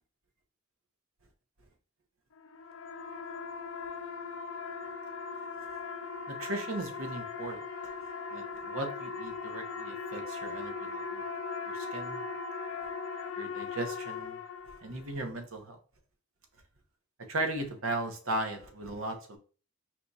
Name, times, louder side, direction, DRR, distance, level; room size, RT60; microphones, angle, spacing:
sound 1, 2.4-15.1, left 4 dB, 65° left, 0.6 m, -39 dB
voice 1, 6.3-7.6 8.3-11.2 11.7-12.2 13.4-14.4 14.8-15.8 17.3-19.4, right 2 dB, 70° right, 0.8 m, -37 dB
4.5 x 2.3 x 4.0 m
head